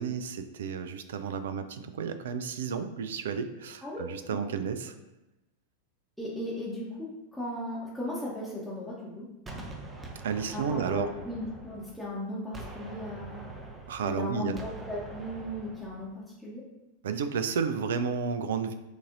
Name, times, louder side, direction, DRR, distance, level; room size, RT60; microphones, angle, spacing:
voice 1, 0.0-4.9 10.2-11.1 13.9-14.6 17.0-18.7, right 6 dB, 60° right, 10 dB, 0.3 m, -32 dB
voice 2, 6.2-9.3 10.5-13.4 14.0-16.6, left 1 dB, ahead, -8 dB, 1.0 m, -37 dB
Gunshot gunfire, 9.5-12.2 12.5-16.1, right 2 dB, 15° right, 0.6 m, -44 dB
6.5 x 2.6 x 2.5 m, 0.99 s
figure-of-eight pair, 90°, 0 cm